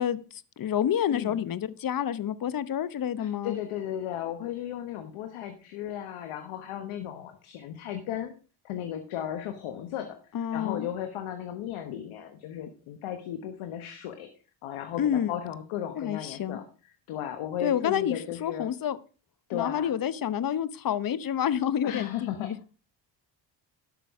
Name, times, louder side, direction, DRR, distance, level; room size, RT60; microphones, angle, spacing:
voice 1, 0.0-3.6 10.3-10.9 15.0-15.3 16.0-16.6 17.6-19.0 19.5-22.8, left 9 dB, 45° left, 17 dB, 0.9 m, -29 dB
voice 2, 1.1-1.4 3.2-8.3 8.6-10.2 10.5-14.3 14.6-16.6 17.1-18.7 19.5-19.9 21.8-22.5, left 10 dB, 80° left, 7 dB, 1.4 m, -35 dB
12.0 x 6.2 x 4.7 m, 0.36 s
cardioid pair, 75°, 49 cm